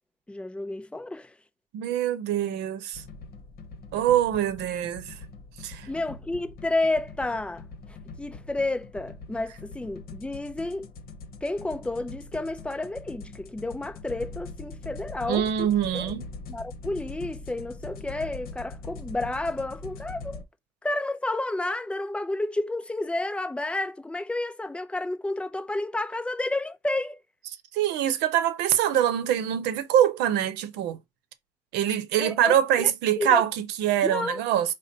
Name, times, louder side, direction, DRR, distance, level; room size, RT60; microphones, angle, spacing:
voice 1, 0.3-1.3 5.9-7.6 8.2-10.9 11.4-16.1 16.5-20.4 20.8-27.2 32.2-32.9 33.2-33.4 34.0-34.4, left 2 dB, 5° left, 0.5 m, -31 dB
voice 2, 1.7-3.0 3.9-5.1 5.6-5.9 15.3-16.2 27.7-31.0 31.7-34.7, right 10 dB, 90° right, 0.7 m, -24 dB
sound 1, 2.9-20.4, left 3 dB, 60° left, 0.9 m, -42 dB
5.1 x 2.1 x 3.8 m
cardioid pair, 110°, 17 cm